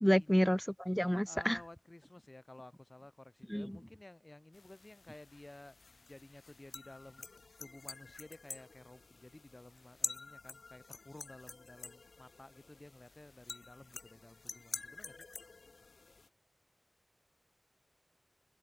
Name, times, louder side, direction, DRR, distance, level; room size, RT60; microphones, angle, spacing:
voice 1, 0.0-1.6 3.5-3.8, equal, 5° left, 1.2 m, -29 dB
voice 2, 1.3-7.3 7.6-15.3, left 2 dB, 30° left, 6.5 m, -55 dB
sound 1, 4.5-16.3, left 4 dB, 75° left, 4.5 m, -48 dB
wide cardioid pair, 65°, 0 cm